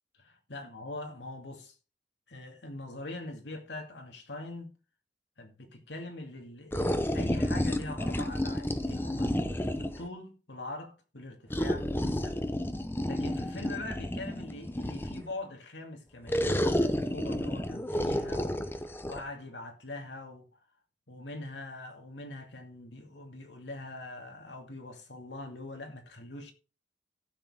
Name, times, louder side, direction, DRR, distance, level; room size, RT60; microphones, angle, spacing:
voice 1, 0.2-1.8 2.3-4.7 5.4-9.3 9.8-12.4 13.1-18.7 19.1-20.6 21.1-26.5, left 2 dB, 75° left, 2.3 m, -42 dB
sound 1, 6.7-10.1 11.5-15.3 16.3-19.2, left 1 dB, 10° left, 0.8 m, -31 dB
15.5 x 6.7 x 3.7 m
head